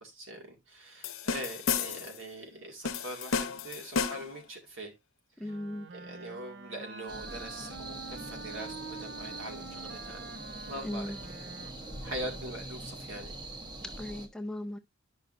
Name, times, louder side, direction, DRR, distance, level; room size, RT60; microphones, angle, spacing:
voice 1, 0.0-4.9 5.4-5.5 5.9-11.1 12.0-13.4, right 1 dB, 75° right, 2.1 m, -43 dB
sound 1, 1.0-2.2 2.8-4.4, left 6 dB, 90° left, 0.8 m, -32 dB
voice 2, 5.4-5.9 10.8-11.2 14.0-14.8, left 1 dB, 5° left, 0.5 m, -37 dB
Wind instrument woodwind instrument, 5.4-12.8, right 4 dB, 55° right, 0.6 m, -46 dB
sound 2, 7.1-14.3, right 2 dB, 20° right, 0.8 m, -43 dB
10.5 x 5.4 x 2.6 m
head